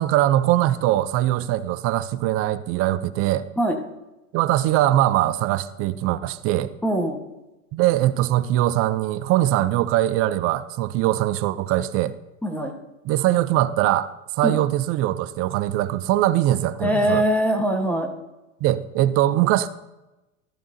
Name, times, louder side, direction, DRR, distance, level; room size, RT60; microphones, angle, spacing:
voice 1, 0.0-3.5 4.3-6.7 7.7-12.1 13.1-17.3 18.6-19.7, right 14 dB, 35° right, 0.5 m, -21 dB
voice 2, 6.8-7.2 12.4-12.7 14.4-14.6 16.8-18.1, right 1 dB, 5° left, 1.2 m, -22 dB
13.5 x 12.0 x 2.7 m
hypercardioid pair, 95°, 42 cm